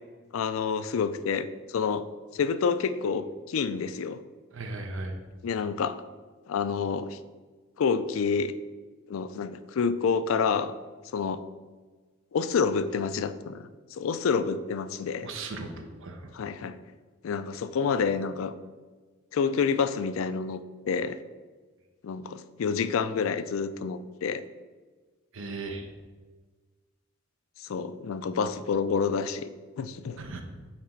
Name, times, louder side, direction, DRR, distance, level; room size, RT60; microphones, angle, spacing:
voice 1, 0.3-2.0 2.3-4.2 5.4-6.0 6.5-7.2 7.8-8.5 9.1-10.7 11.1-11.4 12.3-15.3 16.3-16.8 17.2-18.6 19.3-20.6 20.9-21.2 22.0-24.4 27.6-29.5 29.8-30.2, left 5 dB, 80° left, 12 dB, 0.4 m, -28 dB
voice 2, 4.5-5.2 15.2-16.3 25.3-25.9 30.2-30.4, right 3 dB, 70° right, 4 dB, 0.8 m, -37 dB
5.9 x 4.1 x 4.5 m, 1.4 s
head